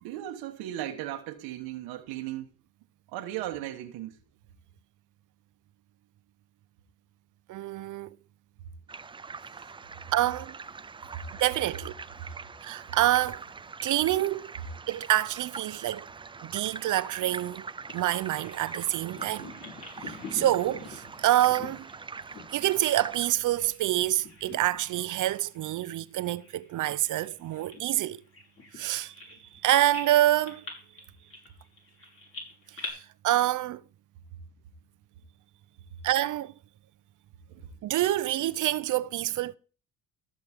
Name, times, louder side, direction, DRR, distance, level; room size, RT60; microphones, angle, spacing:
voice 1, 0.0-2.5 3.1-4.2 9.5-9.6 19.4-19.7 37.5-37.7, right 13 dB, 90° right, 1.2 m, -37 dB
voice 2, 7.5-8.1 10.1-10.5 11.4-11.9 12.6-13.4 13.8-14.5 14.9-16.1 16.4-17.7 17.9-19.5 20.0-21.9 22.5-28.2 28.7-29.1 29.6-30.6 32.7-33.8 36.0-36.5 37.8-39.6, right 14 dB, 55° right, 0.7 m, -27 dB
sound 1, 8.9-23.3, right 5 dB, 15° right, 0.4 m, -43 dB
Bird vocalization bird call bird song, 17.9-23.9 24.1-25.0 25.4-25.6 26.2-29.6 29.9-32.9, left 3 dB, 40° left, 5.3 m, -45 dB
14.5 x 7.6 x 3.6 m
cardioid pair, 95°, 36 cm